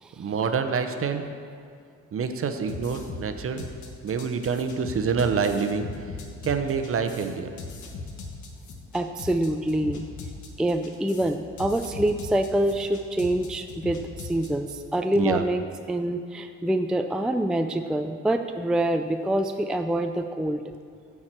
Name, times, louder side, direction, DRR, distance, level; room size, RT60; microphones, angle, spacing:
voice 1, 0.2-1.2 2.1-3.7 4.0-5.9 6.4-7.5 15.2-15.4, right 6 dB, 45° right, 7 dB, 0.8 m, -26 dB
sound 1, 2.6-15.0, left 4 dB, 75° left, 1.3 m, -39 dB
voice 2, 8.9-10.1 10.6-20.7, right 1 dB, ahead, 6 dB, 0.3 m, -26 dB
10.0 x 4.8 x 7.4 m, 2.2 s
cardioid pair, 90°, 30 cm